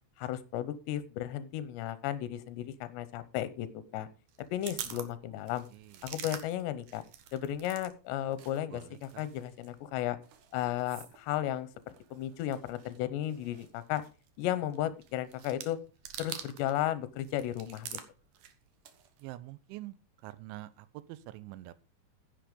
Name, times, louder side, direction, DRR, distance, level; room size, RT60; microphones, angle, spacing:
voice 1, 0.2-4.1 4.5-5.7 6.0-7.0 7.3-10.2 10.5-11.7 12.1-14.0 14.4-15.8 16.2-18.0, left 12 dB, 80° left, 14 dB, 3.1 m, -34 dB
sound 1, 4.3-7.9 8.2-16.8 17.1-19.2, right 9 dB, 70° right, 2.0 m, -47 dB
voice 2, 5.7-6.0 8.7-9.3 19.2-20.0 20.2-21.8, right 16 dB, 90° right, 16 dB, 3.2 m, -46 dB
10.0 x 8.9 x 5.1 m, 0.33 s
omnidirectional pair, 5.2 m